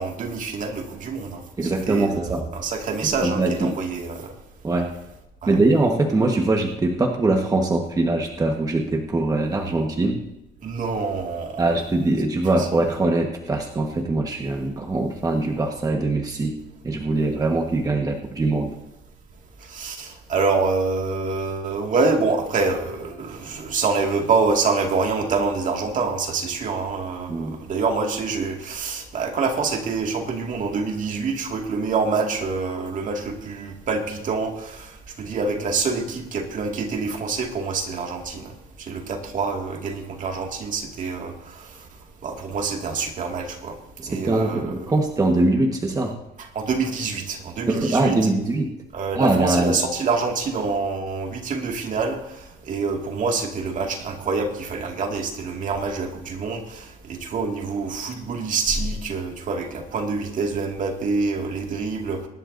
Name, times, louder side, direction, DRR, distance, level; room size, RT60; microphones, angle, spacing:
voice 1, 0.0-4.3 5.4-5.6 10.6-11.6 19.7-34.9 35.2-38.5 38.8-41.3 42.2-43.8 44.1-44.7 46.6-48.2 48.9-52.2 52.7-62.3, right 4 dB, 50° right, 2 dB, 2.2 m, -26 dB
voice 2, 1.6-2.4 3.0-3.8 4.6-4.9 5.5-10.2 11.6-18.7 27.3-27.6 44.0-46.2 47.7-48.7 49.1-49.8, right 2 dB, 20° right, 2 dB, 1.4 m, -22 dB
23.0 x 11.5 x 2.7 m, 0.92 s
cardioid pair, 110°, 17 cm